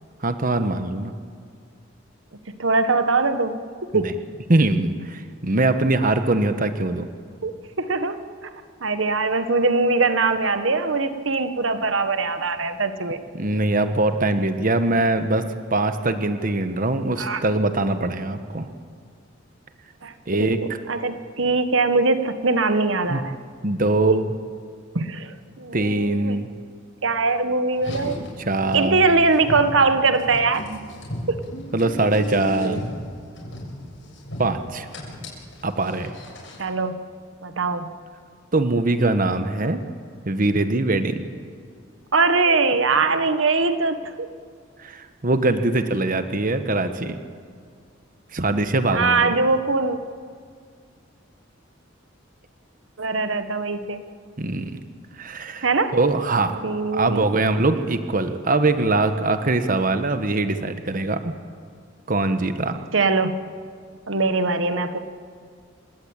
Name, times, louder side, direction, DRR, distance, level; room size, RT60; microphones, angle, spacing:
voice 1, 0.2-1.1 3.9-4.1 4.5-7.1 13.3-18.7 20.3-20.6 23.1-23.2 23.6-24.3 25.7-26.5 28.5-29.0 31.7-32.8 34.4-34.9 35.6-36.1 38.5-39.8 40.2-41.3 44.8-47.2 48.3-49.3 54.4-54.8 55.2-55.7 55.9-56.6 56.9-61.3 62.1-62.8, right 2 dB, 45° right, 9 dB, 1.1 m, -22 dB
voice 2, 2.6-3.6 3.9-4.1 7.4-8.5 8.8-13.2 17.2-17.4 20.0-20.5 20.9-23.4 24.1-24.2 24.9-26.4 27.0-28.2 28.7-30.6 31.3-31.4 32.5-32.8 36.6-37.0 37.4-37.9 42.1-44.3 48.9-50.0 53.0-54.0 55.6-55.9 56.6-57.3 62.9-63.3 64.1-65.0, right 3 dB, 75° right, 10 dB, 1.2 m, -22 dB
Car, 27.7-36.7, left 1 dB, 70° left, 7.3 m, -35 dB
28.0 x 17.0 x 8.9 m, 2.1 s
head